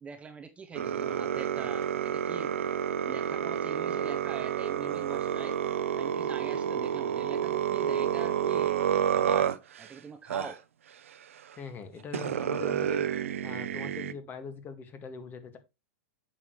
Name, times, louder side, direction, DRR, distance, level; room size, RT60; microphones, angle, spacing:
voice 1, 0.0-2.5 3.1-5.6 6.0-10.6, right 5 dB, 15° right, 0.8 m, -44 dB
sound 1, 0.8-9.9 10.3-10.5 11.5-11.6 12.1-14.1, right 9 dB, 85° right, 0.8 m, -29 dB
voice 2, 11.6-13.0 13.4-15.6, left 5 dB, 25° left, 1.8 m, -42 dB
8.4 x 6.9 x 3.1 m
hypercardioid pair, 120°, 7 cm